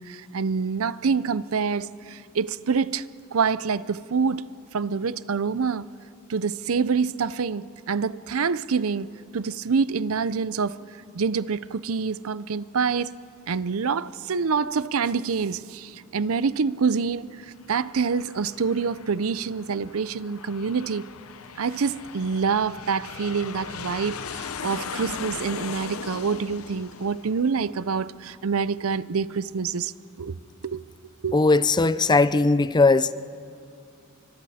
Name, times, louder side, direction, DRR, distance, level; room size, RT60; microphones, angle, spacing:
voice 1, 0.0-3.0 3.3-5.9 6.3-10.8 11.1-13.1 13.5-21.0 21.6-29.9 30.2-30.4 30.6-30.8 31.2-31.3, right 5 dB, 80° right, 0.6 m, -26 dB
Aircraft, 17.5-28.6, left 6 dB, 75° left, 0.7 m, -39 dB
voice 2, 31.3-33.1, left 3 dB, 20° left, 0.5 m, -19 dB
30.0 x 25.5 x 4.3 m
head